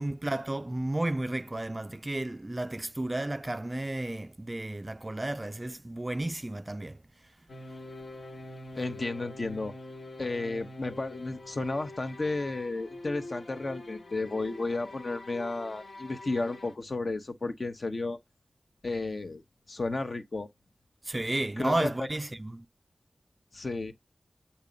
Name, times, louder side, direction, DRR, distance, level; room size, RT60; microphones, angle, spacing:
voice 1, 0.0-7.0 21.0-22.7, right 1 dB, 25° right, 0.4 m, -32 dB
sound 1, 7.5-16.7, left 2 dB, 75° left, 1.5 m, -45 dB
voice 2, 8.7-9.7 10.2-18.2 18.8-19.4 19.7-20.5 21.6-22.1 23.5-23.9, left 2 dB, 55° left, 1.0 m, -33 dB
8.1 x 2.9 x 5.2 m
wide cardioid pair, 85°, 0 cm